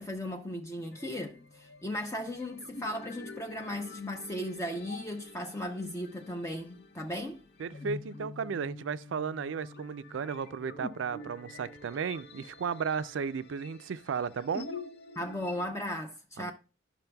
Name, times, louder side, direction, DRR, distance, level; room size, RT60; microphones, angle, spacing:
voice 1, 0.0-7.4 15.2-16.5, left 1 dB, 15° left, 0.5 m, -36 dB
sound 1, 0.9-15.7, left 3 dB, 55° left, 0.7 m, -47 dB
voice 2, 7.6-14.7 16.4-16.5, right 6 dB, 75° right, 0.4 m, -34 dB
12.0 x 5.9 x 2.3 m
head